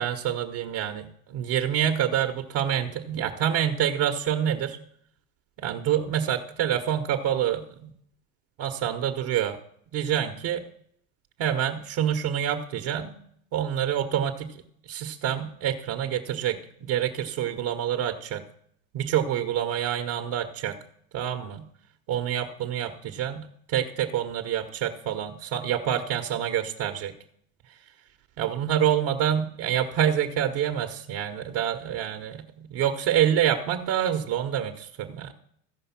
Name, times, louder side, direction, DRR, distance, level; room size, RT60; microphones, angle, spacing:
voice 1, 0.0-4.8 5.6-7.9 8.6-9.6 9.9-10.6 11.4-13.2 13.5-14.6 14.9-18.4 18.9-20.8 21.1-21.6 22.1-27.1 28.4-35.3, right 10 dB, 55° right, 7 dB, 1.1 m, -27 dB
15.0 x 5.3 x 5.8 m, 0.66 s
hypercardioid pair, 95°, 43 cm